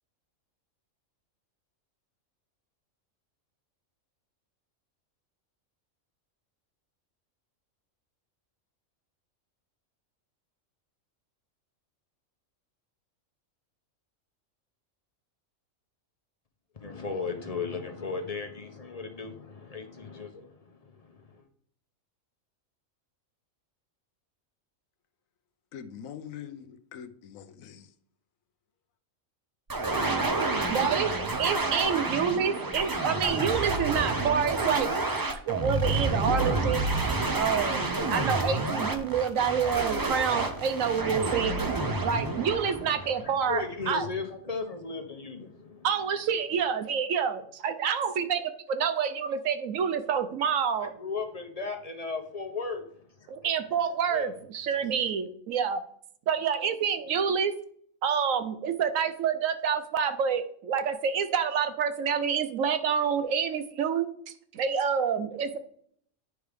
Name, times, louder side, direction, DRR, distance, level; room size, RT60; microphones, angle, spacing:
voice 1, 16.7-21.5 43.2-45.9 50.8-52.9 53.2-53.3 54.1-54.3, left 4 dB, 35° left, 0.8 m, -36 dB
voice 2, 25.7-27.9, left 8 dB, 85° left, 1.1 m, -43 dB
sound 1, 29.7-43.6, right 2 dB, 25° right, 0.4 m, -29 dB
voice 3, 30.7-31.1 31.4-34.9 35.5-36.8 37.3-41.5 42.0-44.1 45.8-48.4 48.7-50.9 53.3-55.8 56.3-57.5 58.0-64.1 64.5-65.6, right 7 dB, 80° right, 1.1 m, -28 dB
9.5 x 4.7 x 3.4 m
omnidirectional pair, 1.4 m